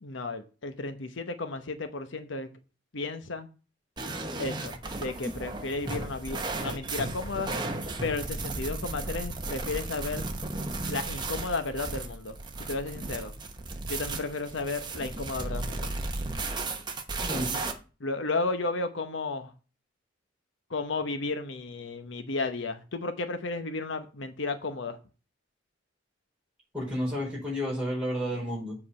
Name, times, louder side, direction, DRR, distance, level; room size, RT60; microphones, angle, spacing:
voice 1, 0.0-2.5 2.9-3.5 4.4-7.5 8.0-10.2 10.9-13.3 13.9-15.9 18.0-19.5 20.7-25.0, left 3 dB, 70° left, 0.9 m, -33 dB
sound 1, 4.0-17.7, right 2 dB, 20° right, 1.0 m, -35 dB
voice 2, 17.2-17.6 26.7-28.8, equal, 5° right, 4.7 m, -31 dB
7.5 x 4.8 x 6.9 m
head